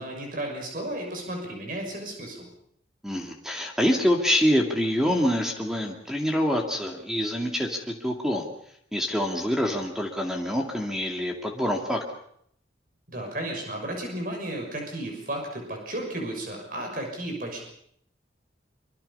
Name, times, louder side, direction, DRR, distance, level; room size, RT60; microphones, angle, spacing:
voice 1, 0.0-2.5 13.1-17.6, right 1 dB, 45° right, 2 dB, 6.2 m, -33 dB
voice 2, 3.0-8.5 8.9-12.0, equal, 5° right, 2 dB, 2.5 m, -26 dB
25.5 x 25.0 x 5.6 m, 0.67 s
head